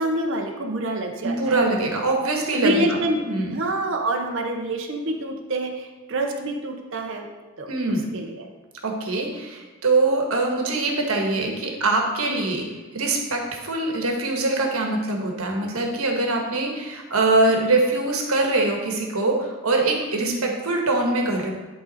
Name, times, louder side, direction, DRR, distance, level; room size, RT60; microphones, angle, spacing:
voice 1, 0.0-1.6 2.5-7.3 7.6-8.5 12.3-12.5 17.5-17.8 20.2-20.5, right 1 dB, 60° right, 2 dB, 0.7 m, -27 dB
voice 2, 1.2-3.0 3.3-3.6 7.7-8.0 8.8-12.6 12.9-21.5, right 2 dB, 80° right, 2 dB, 1.3 m, -23 dB
11.0 x 3.8 x 4.1 m, 1.2 s
head